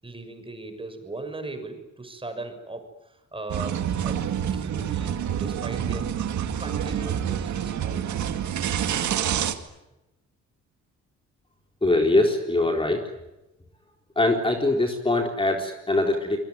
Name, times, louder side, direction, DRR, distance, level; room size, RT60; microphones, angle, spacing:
voice 1, 0.0-4.2 4.5-6.1 6.6-8.2, right 2 dB, 15° right, 7 dB, 6.5 m, -39 dB
sound 1, 3.5-9.5, right 9 dB, 70° right, 2.3 m, -27 dB
voice 2, 11.8-13.1 14.2-16.4, left 2 dB, 15° left, 3 dB, 4.2 m, -22 dB
25.5 x 23.0 x 9.7 m, 0.94 s
cardioid pair, 90°, 30 cm